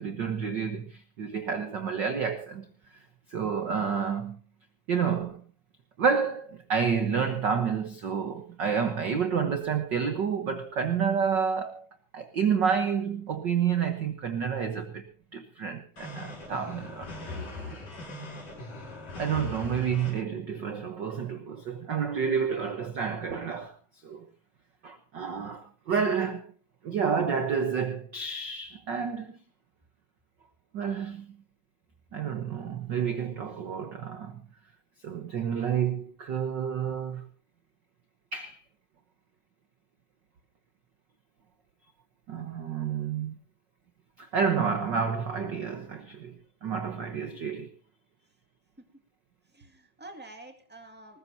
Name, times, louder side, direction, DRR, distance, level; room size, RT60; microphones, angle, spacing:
voice 1, 0.0-2.7 3.3-4.4 4.9-5.4 6.0-11.9 12.1-17.8 19.2-23.8 24.0-24.2 24.8-26.5 26.8-29.4 30.7-31.4 32.1-34.4 35.0-37.3 38.3-38.6 42.3-43.4 44.2-46.3 46.6-47.7, right 6 dB, 80° right, 1.0 m, -29 dB
sound 1, 16.0-20.1, left 2 dB, 75° left, 7.0 m, -40 dB
voice 2, 49.5-51.2, right 2 dB, 5° right, 1.1 m, -48 dB
20.0 x 20.0 x 2.8 m
omnidirectional pair, 3.7 m